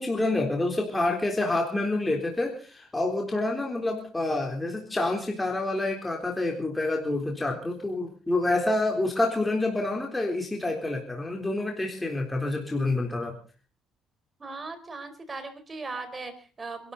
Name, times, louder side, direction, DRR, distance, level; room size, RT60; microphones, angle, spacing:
voice 1, 0.0-13.3, left 2 dB, 15° left, 1 dB, 3.7 m, -28 dB
voice 2, 14.4-16.9, right 3 dB, 30° right, 9 dB, 4.4 m, -38 dB
26.5 x 12.5 x 4.1 m, 0.37 s
cardioid pair, 85°, 0 cm